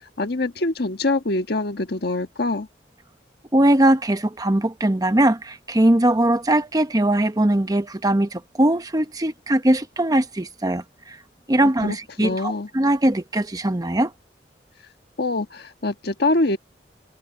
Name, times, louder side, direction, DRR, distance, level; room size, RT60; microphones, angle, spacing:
voice 1, 0.2-2.7 11.6-12.7 15.2-16.6, left 2 dB, 65° left, 1.5 m, -24 dB
voice 2, 3.5-11.2 11.5-14.1, right 1 dB, 20° right, 1.0 m, -20 dB
head